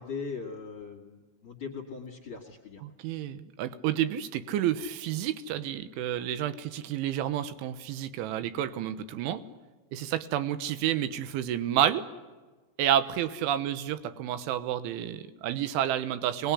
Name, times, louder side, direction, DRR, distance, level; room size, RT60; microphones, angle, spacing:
voice 1, 0.0-2.8 9.5-9.6, left 5 dB, 40° left, 1 dB, 2.0 m, -40 dB
voice 2, 2.8-9.4 9.9-12.0 12.8-16.5, right 11 dB, 75° right, 13 dB, 3.3 m, -30 dB
24.0 x 20.5 x 9.9 m, 1.3 s
omnidirectional pair, 5.9 m